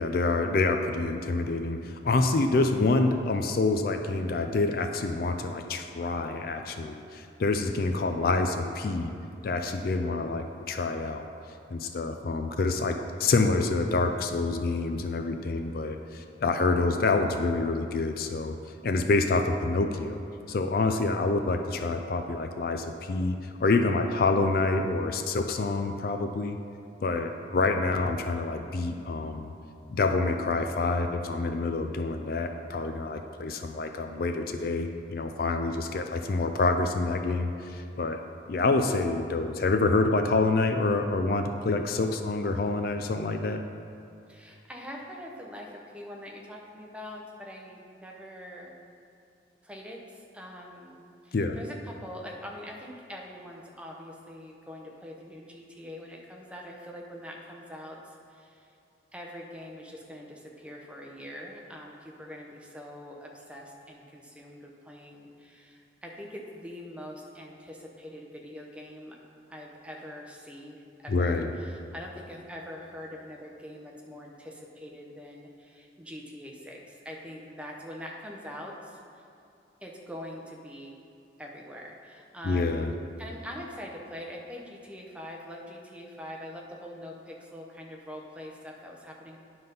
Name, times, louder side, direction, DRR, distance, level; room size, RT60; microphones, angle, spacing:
voice 1, 0.0-9.1 9.4-11.2 11.7-18.5 18.8-20.2 20.5-26.6 27.0-29.5 29.9-38.2 38.5-43.6 51.3-51.6 71.1-71.5 82.4-82.9, left 3 dB, 50° left, 6 dB, 0.4 m, -27 dB
voice 2, 44.3-48.7 49.6-58.7 59.1-69.2 69.5-79.2 79.8-81.0 81.4-82.9 83.2-89.4, equal, 5° right, -1 dB, 0.7 m, -43 dB
9.6 x 4.0 x 5.3 m, 2.6 s
head